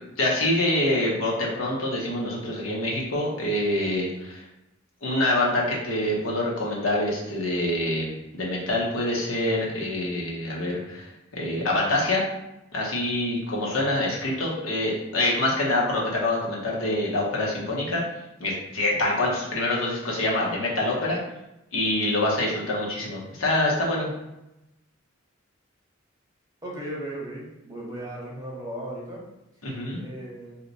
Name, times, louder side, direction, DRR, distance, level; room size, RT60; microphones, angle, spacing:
voice 1, 0.2-4.4 5.0-8.1 8.3-12.2 12.7-18.0 18.4-21.2 21.7-24.1 29.6-30.0, left 1 dB, 70° left, -3 dB, 0.8 m, -25 dB
voice 2, 26.6-29.2 30.0-30.6, right 1 dB, 15° right, -4 dB, 0.8 m, -36 dB
2.8 x 2.2 x 3.9 m, 0.89 s
head